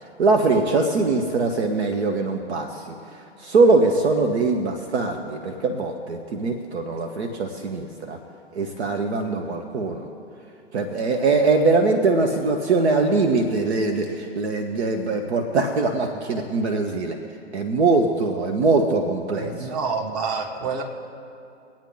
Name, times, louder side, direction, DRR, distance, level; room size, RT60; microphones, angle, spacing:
voice 1, 0.2-2.8 3.4-8.2 8.5-10.1 10.7-17.2 17.5-19.7, right 3 dB, 65° right, 5 dB, 1.2 m, -22 dB
voice 2, 19.4-20.8, right 5 dB, 40° right, 3 dB, 1.9 m, -28 dB
23.5 x 8.9 x 3.9 m, 2.6 s
hypercardioid pair, 125°, 35 cm